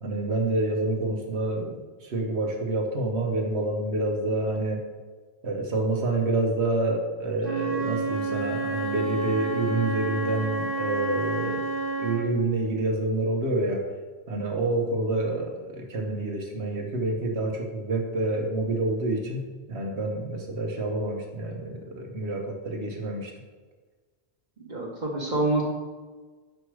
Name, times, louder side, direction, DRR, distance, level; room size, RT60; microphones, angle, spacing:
voice 1, 0.0-4.8 5.4-11.6 12.0-13.8 14.3-23.3, right 2 dB, 75° right, 1 dB, 1.4 m, -28 dB
Wind instrument woodwind instrument, 7.4-12.4, right 3 dB, 55° left, 1.8 m, -29 dB
voice 2, 24.7-25.6, right 2 dB, 45° right, -2 dB, 1.2 m, -26 dB
6.1 x 5.1 x 4.8 m, 1.4 s
omnidirectional pair, 1.1 m